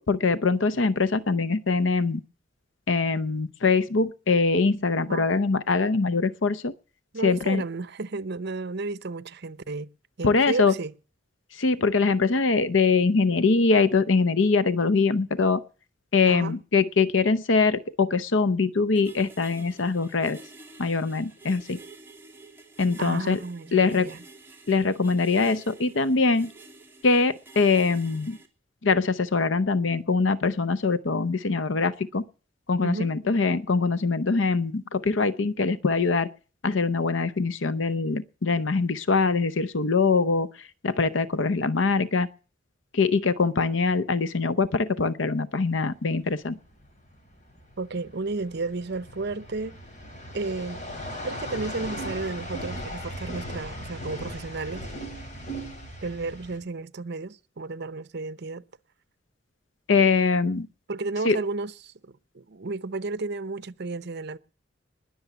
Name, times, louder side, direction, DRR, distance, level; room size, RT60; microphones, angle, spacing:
voice 1, 0.0-2.2 2.9-6.7 7.2-7.6 10.2-10.7 11.5-15.6 16.1-20.4 20.8-21.8 22.8-23.4 23.7-24.1 24.7-26.5 27.0-28.4 28.8-32.2 32.7-36.3 36.6-42.3 42.9-46.6 59.9-60.7 61.2-61.4, left 4 dB, 75° left, 0.8 m, -23 dB
voice 2, 7.1-9.9 10.2-10.9 16.3-16.6 23.0-24.2 32.8-33.1 47.8-49.8 50.3-50.8 51.2-54.9 56.0-58.6 60.9-64.4, right 3 dB, 60° right, 0.8 m, -33 dB
sound 1, 18.9-28.5, right 3 dB, 10° right, 2.7 m, -49 dB
sound 2, 45.7-56.6, equal, 40° left, 4.9 m, -38 dB
20.5 x 7.0 x 7.0 m
head